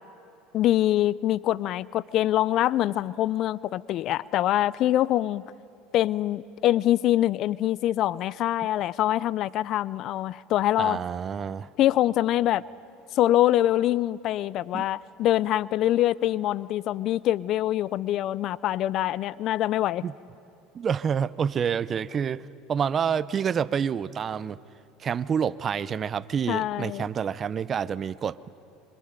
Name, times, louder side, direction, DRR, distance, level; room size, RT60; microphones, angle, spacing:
voice 1, 0.5-5.4 5.9-11.0 11.8-12.6 13.1-20.0 26.5-27.0, left 13 dB, 55° left, 0.5 m, -24 dB
voice 2, 10.8-11.7 14.7-14.8 20.0-20.1 20.7-24.6 25.0-28.5, right 7 dB, 35° right, 0.6 m, -28 dB
26.5 x 25.5 x 5.2 m
hypercardioid pair, 80°, 0 cm